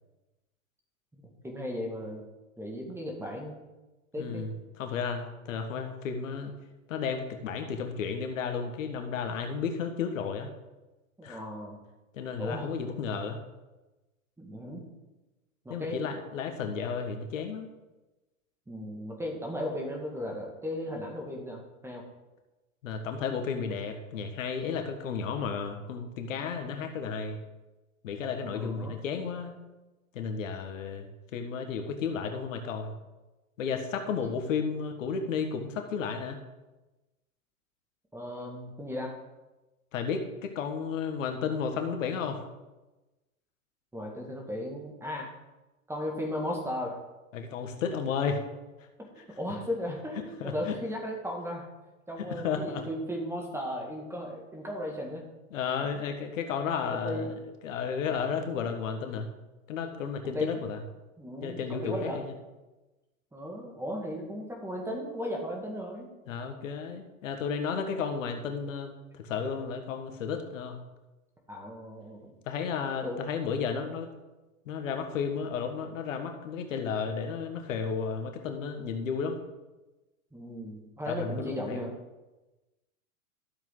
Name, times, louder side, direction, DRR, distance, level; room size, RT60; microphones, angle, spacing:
voice 1, 1.1-2.3 2.6-3.6 4.1-4.5 11.2-11.8 12.4-12.7 14.4-14.9 15.7-16.0 18.7-22.0 28.4-28.9 38.1-39.1 43.9-45.3 45.9-47.0 49.0-51.7 52.1-55.2 56.9-57.3 60.2-60.6 61.2-62.2 63.3-66.1 71.5-72.3 73.0-73.2 78.8-78.9 80.3-81.9, left 1 dB, 5° right, 0 dB, 1.9 m, -36 dB
voice 2, 4.2-4.5 4.8-6.5 6.9-10.5 11.2-11.4 12.1-13.4 15.7-17.7 22.8-27.4 28.0-29.5 30.1-33.0 33.6-36.4 39.9-42.4 47.3-48.4 50.4-50.7 52.2-52.8 55.5-59.3 59.7-60.8 61.4-62.3 66.3-70.8 72.5-74.1 74.6-79.4 81.1-81.8, left 6 dB, 65° left, 6 dB, 1.6 m, -33 dB
12.5 x 7.4 x 3.9 m, 1.1 s
hypercardioid pair, 110°, 43 cm